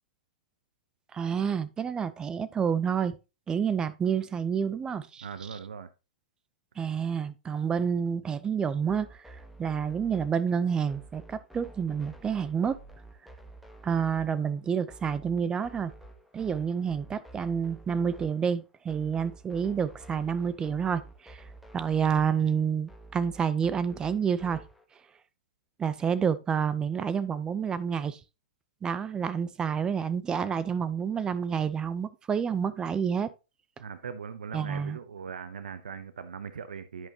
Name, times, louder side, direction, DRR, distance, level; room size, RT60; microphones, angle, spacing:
voice 1, 1.1-3.2 3.5-5.3 6.8-12.8 13.8-15.9 16.3-21.4 21.7-24.6 25.8-28.2 28.8-33.3 34.5-35.0, right 7 dB, 15° right, 0.6 m, -29 dB
voice 2, 5.2-5.9 33.8-37.1, right 6 dB, 85° right, 0.7 m, -40 dB
sound 1, 8.9-24.8, right 2 dB, ahead, 1.1 m, -50 dB
11.0 x 5.1 x 2.9 m
hypercardioid pair, 125°, 5 cm